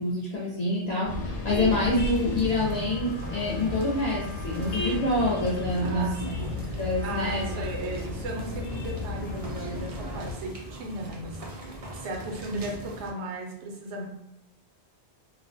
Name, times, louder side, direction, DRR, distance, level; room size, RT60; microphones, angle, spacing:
voice 1, 0.0-6.1 6.8-7.6, left 1 dB, 60° left, -5 dB, 0.4 m, -27 dB
sound 1, 1.0-10.3, left 3 dB, 85° left, 0.9 m, -34 dB
sound 2, 1.7-13.1, right 1 dB, 55° right, 0.4 m, -42 dB
voice 2, 5.8-6.7 7.0-11.4 11.9-14.0, right 2 dB, 80° right, 0 dB, 0.9 m, -36 dB
2.3 x 2.0 x 2.5 m, 0.80 s
omnidirectional pair, 1.2 m